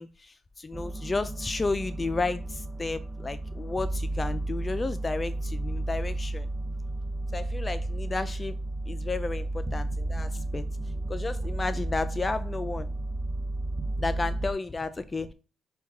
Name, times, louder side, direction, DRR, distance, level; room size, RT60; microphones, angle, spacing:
voice 1, 0.0-6.5 7.3-8.6 8.9-10.6 11.1-12.9 14.0-15.3, left 3 dB, 25° left, 12 dB, 0.3 m, -32 dB
sound 1, 0.7-14.5, right 2 dB, 15° right, 0.6 m, -32 dB
6.1 x 2.3 x 3.5 m, 0.34 s
cardioid pair, 90°, 0 cm